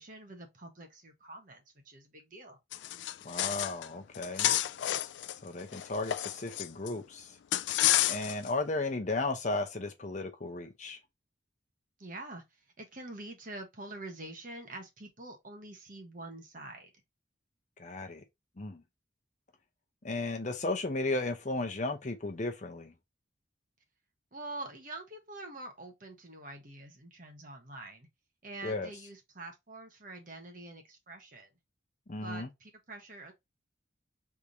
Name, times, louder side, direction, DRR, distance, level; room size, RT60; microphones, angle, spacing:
voice 1, 0.0-2.6 12.0-12.4 12.8-16.9 24.3-28.1 28.4-31.5 32.2-33.3, right 2 dB, 45° right, 1.3 m, -46 dB
sound 1, 2.7-3.9 4.1-6.9 7.5-8.5, left 13 dB, 70° left, 0.3 m, -30 dB
voice 2, 3.2-4.5 5.4-7.4 8.1-11.0 17.8-18.2 18.6-18.8 20.0-22.9 28.6-28.9 32.1-32.5, left 2 dB, 40° left, 0.7 m, -34 dB
3.6 x 3.3 x 4.0 m
head